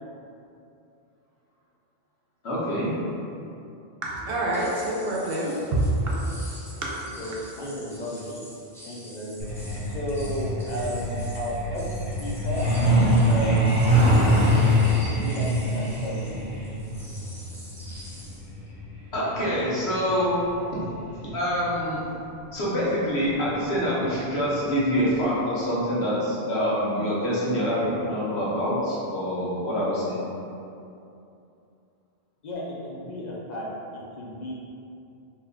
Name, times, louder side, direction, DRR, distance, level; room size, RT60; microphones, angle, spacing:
voice 1, 2.4-2.9 19.1-20.4 21.3-22.0 22.5-30.2, equal, 85° left, -8 dB, 1.1 m, -25 dB
voice 2, 4.0-6.4 6.7-7.1, right 1 dB, 70° right, -4 dB, 0.8 m, -27 dB
sound 1, 4.5-18.5, equal, 5° left, 0.4 m, -46 dB
voice 3, 7.2-8.4 8.8-9.5 9.9-11.8 12.2-12.7 13.3-14.6 15.1-15.5 15.7-16.2 32.4-33.7 33.9-34.5, equal, 50° left, -5 dB, 0.6 m, -33 dB
Truck, 9.4-21.7 22.9-23.1 23.5-23.7 24.0-24.3 24.6-24.7 25.2-25.3, equal, 40° right, 1.0 m, -24 dB
2.9 x 2.2 x 3.6 m, 2.7 s
omnidirectional pair, 1.1 m